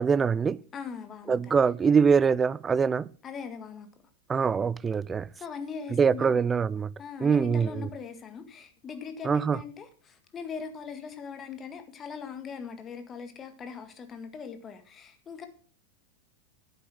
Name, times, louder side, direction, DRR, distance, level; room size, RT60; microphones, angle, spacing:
voice 1, 0.0-0.6 1.3-3.1 4.3-5.3 5.9-6.9 7.2-7.9 9.2-9.6, right 6 dB, 20° right, 0.4 m, -24 dB
voice 2, 0.7-1.6 3.2-3.9 5.4-6.4 7.0-15.5, left 6 dB, 25° left, 1.8 m, -40 dB
9.9 x 8.2 x 6.2 m
figure-of-eight pair, 90°, 0 cm